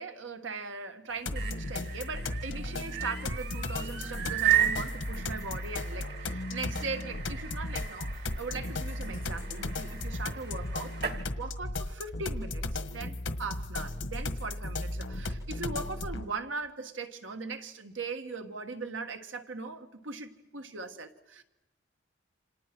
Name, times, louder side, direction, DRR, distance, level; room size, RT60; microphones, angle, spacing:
voice 1, 0.0-11.0 11.4-21.4, right 4 dB, 90° right, 1.7 m, -39 dB
sound 1, 1.1-11.2, right 11 dB, 60° right, 1.9 m, -35 dB
sound 2, 1.3-16.3, left 2 dB, 90° left, 1.6 m, -36 dB
28.5 x 26.5 x 6.1 m
head